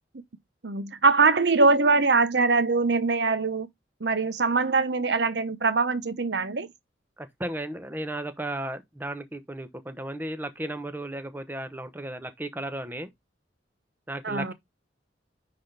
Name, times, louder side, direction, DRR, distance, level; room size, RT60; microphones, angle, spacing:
voice 1, 0.6-3.7 4.0-6.7 14.2-14.5, right 4 dB, 65° right, 0.9 m, -22 dB
voice 2, 7.2-13.1 14.1-14.5, right 1 dB, 10° right, 0.8 m, -35 dB
10.0 x 3.9 x 3.3 m
head